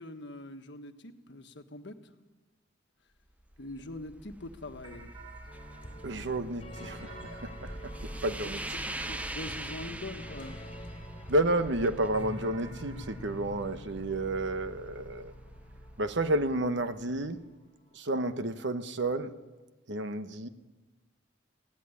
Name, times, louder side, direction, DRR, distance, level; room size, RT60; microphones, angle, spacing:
voice 1, 0.0-2.1 3.6-5.1 8.4-10.6, left 2 dB, 65° left, 1.4 m, -43 dB
sound 1, 3.3-17.5, right 1 dB, 10° right, 0.6 m, -44 dB
sound 2, 4.8-11.4 12.1-14.9, right 4 dB, 25° right, 3.8 m, -54 dB
sound 3, 5.5-18.0, left 1 dB, 30° left, 3.3 m, -47 dB
voice 2, 6.0-8.6 11.3-15.3 16.0-17.4 17.9-19.3 19.9-20.5, right 1 dB, 65° right, 1.1 m, -31 dB
17.0 x 16.5 x 9.7 m
head